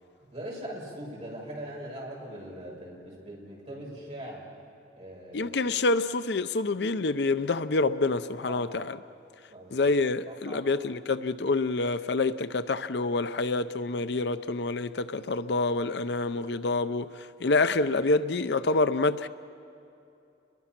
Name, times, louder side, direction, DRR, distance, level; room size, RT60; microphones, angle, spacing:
voice 1, 0.3-4.5 5.0-5.6 8.4-8.9 9.5-10.0 10.3-10.6, right 1 dB, 35° right, 6.2 m, -41 dB
voice 2, 5.3-9.0 9.7-19.3, left 3 dB, 65° left, 0.6 m, -27 dB
29.5 x 22.5 x 5.9 m
head